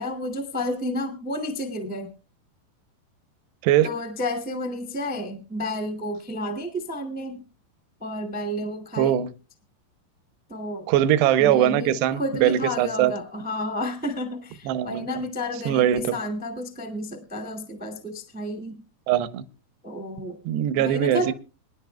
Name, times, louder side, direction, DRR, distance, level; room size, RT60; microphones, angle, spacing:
voice 1, 0.0-2.1 3.8-7.5 8.0-9.2 10.5-10.9 11.4-18.8 19.8-20.4 20.8-21.3, left 1 dB, 5° right, 0.6 m, -31 dB
voice 2, 9.0-9.3 10.9-13.1 14.7-15.0 15.7-16.1 19.1-19.4 20.5-21.3, right 11 dB, 80° right, 2.8 m, -21 dB
25.5 x 11.0 x 2.3 m
omnidirectional pair, 4.9 m